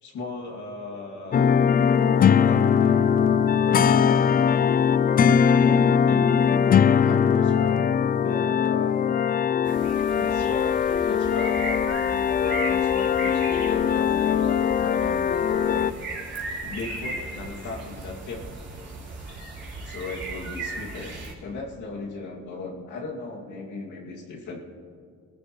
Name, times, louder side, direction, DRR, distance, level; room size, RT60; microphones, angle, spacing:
voice 1, 0.0-1.6 2.1-3.1 5.5-7.9 8.2-9.0 10.1-15.9 16.6-18.4 19.8-24.6, left 3 dB, 75° left, -1 dB, 2.4 m, -37 dB
sound 1, 1.3-15.9, left 7 dB, 30° left, 0.3 m, -21 dB
sound 2, 9.6-21.3, right 2 dB, 40° right, 3.3 m, -36 dB
22.0 x 14.5 x 3.1 m, 2.3 s
cardioid pair, 90°, 30 cm